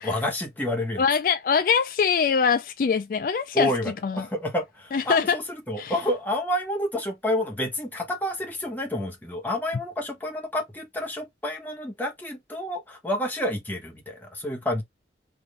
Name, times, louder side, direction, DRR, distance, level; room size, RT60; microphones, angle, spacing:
voice 1, 0.0-1.0 3.5-14.8, left 1 dB, 10° left, 0.9 m, -29 dB
voice 2, 1.0-3.7 4.0-4.3 4.9-5.4 5.8-6.0, left 6 dB, 50° left, 0.3 m, -23 dB
3.5 x 2.5 x 3.1 m
head